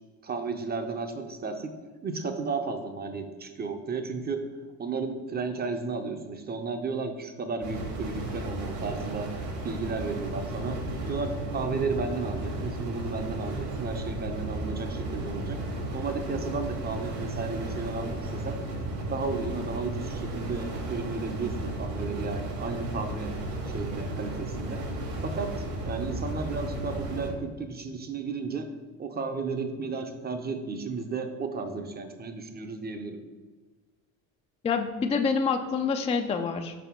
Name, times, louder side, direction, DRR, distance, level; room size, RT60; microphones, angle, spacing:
voice 1, 0.2-1.7 2.0-4.5 4.8-9.3 9.6-10.8 11.1-15.6 15.9-18.6 19.1-23.3 23.7-24.8 25.2-25.5 25.8-28.7 29.0-33.2, right 4 dB, 20° right, 7 dB, 0.7 m, -33 dB
sound 1, 7.6-27.3, right 2 dB, 65° right, 1.8 m, -34 dB
voice 2, 34.6-36.7, left 5 dB, 15° left, 5 dB, 0.4 m, -27 dB
5.1 x 4.2 x 4.5 m, 1.4 s
hypercardioid pair, 75°, 43 cm